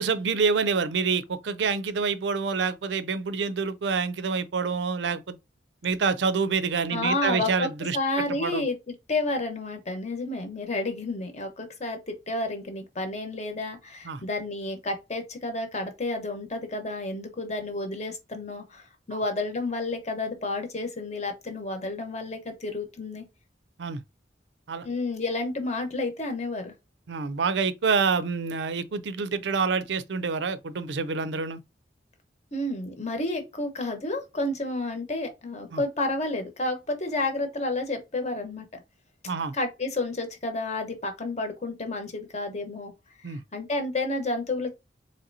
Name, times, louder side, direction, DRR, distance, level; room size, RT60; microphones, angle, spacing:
voice 1, 0.0-5.4 5.8-8.6 14.0-14.2 19.1-19.2 23.8-24.0 24.7-24.9 27.1-31.6 35.7-35.8 39.3-39.5 43.2-43.4, right 5 dB, 80° right, 0.5 m, -27 dB
voice 2, 6.9-7.7 7.9-23.2 24.8-26.7 32.5-38.8 39.5-42.9 43.2-44.7, left 2 dB, 40° left, 1.0 m, -31 dB
4.0 x 3.1 x 2.7 m
head